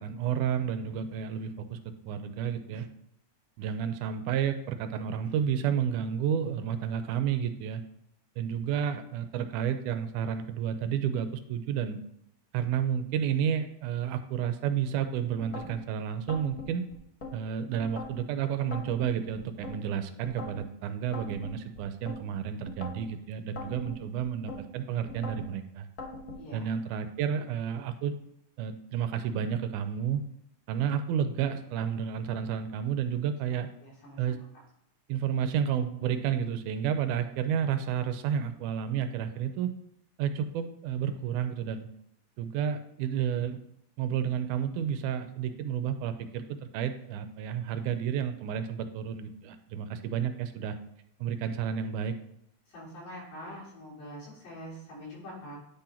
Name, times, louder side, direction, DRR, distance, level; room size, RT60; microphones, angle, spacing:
voice 1, 0.0-2.9 3.6-7.8 8.4-12.0 12.5-16.8 17.3-25.9 26.5-28.1 28.6-30.2 30.7-33.7 34.2-34.4 35.1-39.7 40.2-41.9 42.4-43.6 44.0-50.8 51.2-52.2, right 8 dB, 85° right, 9 dB, 2.1 m, -31 dB
sound 1, 15.4-15.8 16.3-17.3 17.8-18.2 18.7-19.8 20.2-20.6 21.1-22.2 22.7-23.1 23.6-24.6 25.1-25.5 26.0-26.4, left 3 dB, 55° left, 1.0 m, -41 dB
voice 2, 26.4-26.7 33.8-34.3 52.7-55.6, equal, 90° left, -7 dB, 5.1 m, -44 dB
10.5 x 3.9 x 4.3 m, 0.78 s
omnidirectional pair, 3.5 m